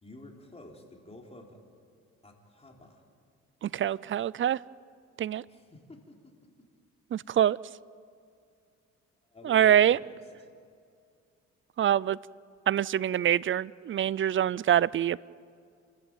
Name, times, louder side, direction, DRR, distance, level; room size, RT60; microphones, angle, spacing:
voice 1, 0.0-1.6 2.2-3.0 5.5-6.3 9.3-10.1, left 2 dB, 20° left, 1 dB, 4.1 m, -50 dB
voice 2, 3.6-4.6 5.2-5.4 7.1-7.6 9.4-10.0 11.8-12.2 12.7-15.2, right 10 dB, 40° right, 22 dB, 0.5 m, -25 dB
30.0 x 14.5 x 9.1 m, 2.3 s
cardioid pair, 90°, 30 cm